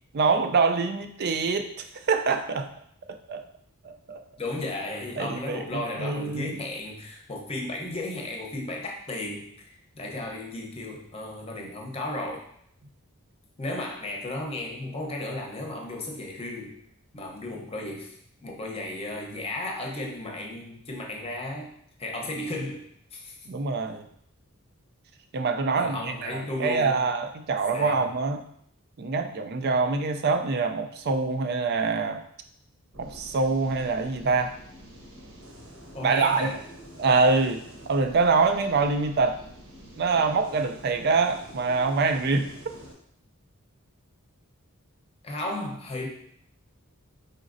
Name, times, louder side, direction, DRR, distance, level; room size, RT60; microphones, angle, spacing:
voice 1, 0.1-2.7 3.3-3.4 3.8-4.2 5.2-6.6 23.5-24.1 25.3-28.4 29.0-32.2 33.0-34.6 36.0-36.5 37.0-39.4 40.0-42.5, right 4 dB, 50° right, 7 dB, 0.4 m, -25 dB
voice 2, 4.4-12.4 13.6-16.8 17.1-18.2 18.4-21.7 22.0-23.4 25.8-27.0 27.7-28.0 35.9-36.6 45.2-46.1, left 2 dB, 25° left, 0 dB, 0.8 m, -34 dB
sound 1, 32.9-42.9, equal, 65° right, 1.0 m, -47 dB
5.0 x 4.0 x 2.6 m, 0.69 s
head